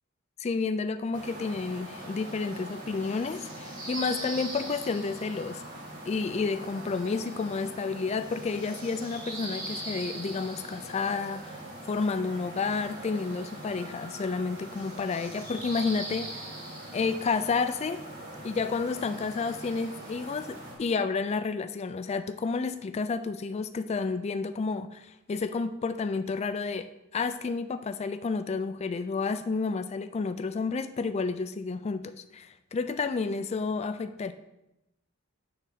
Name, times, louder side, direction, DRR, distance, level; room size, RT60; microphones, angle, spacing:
voice 1, 0.4-5.6 6.0-11.6 11.9-16.4 16.9-18.0 18.4-34.3, left 4 dB, 30° left, 10 dB, 0.3 m, -30 dB
sound 1, 1.1-20.7, right 1 dB, 35° right, 2.2 m, -41 dB
7.6 x 3.9 x 6.4 m, 0.92 s
head